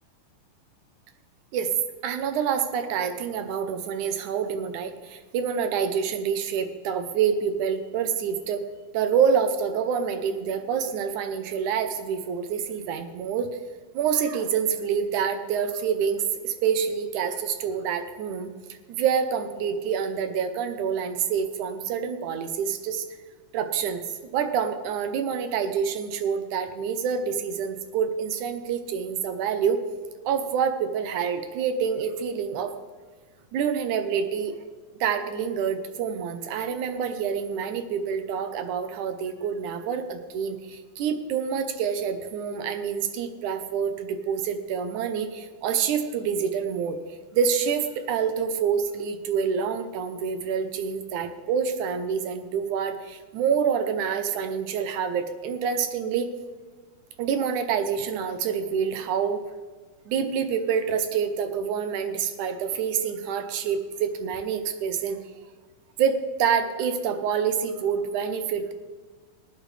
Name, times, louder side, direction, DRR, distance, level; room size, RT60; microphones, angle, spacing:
voice 1, 2.0-8.6 8.9-13.5 13.9-23.1 23.5-24.1 24.3-29.8 30.3-32.7 33.5-34.5 35.0-47.0 47.3-56.3 57.2-59.4 60.1-65.2 66.0-68.7, right 7 dB, 75° right, 8 dB, 1.9 m, -27 dB
20.0 x 9.1 x 3.3 m, 1.5 s
omnidirectional pair, 4.2 m